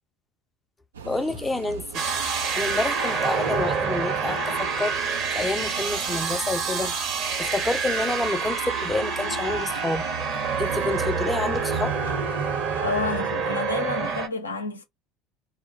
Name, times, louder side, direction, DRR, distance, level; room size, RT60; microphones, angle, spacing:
sound 1, 0.9-13.2, right 5 dB, 75° right, 0.3 m, -38 dB
voice 1, 1.0-2.0 2.5-6.9 7.4-10.0 10.6-11.9, left 2 dB, 15° left, 0.4 m, -28 dB
sound 2, 1.9-14.3, right 5 dB, 50° right, 0.9 m, -27 dB
voice 2, 12.8-14.8, left 3 dB, 85° left, 0.5 m, -29 dB
2.1 x 2.1 x 2.9 m
figure-of-eight pair, 65°, 0 cm